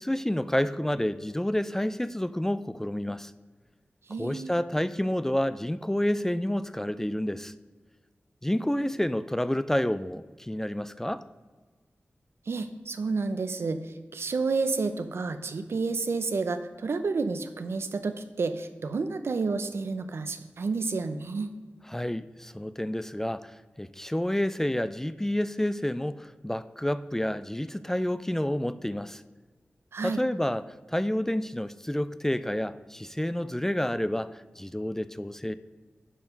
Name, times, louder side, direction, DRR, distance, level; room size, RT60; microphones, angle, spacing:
voice 1, 0.0-3.3 4.2-7.5 8.4-11.2 21.9-23.5 23.8-29.2 30.0-35.6, left 1 dB, 10° left, 14 dB, 0.4 m, -29 dB
voice 2, 4.1-4.5 12.5-13.8 14.1-21.5 29.9-30.2, right 4 dB, 80° right, 9 dB, 0.7 m, -30 dB
11.0 x 4.7 x 5.2 m, 1.4 s
wide cardioid pair, 65°, 4 cm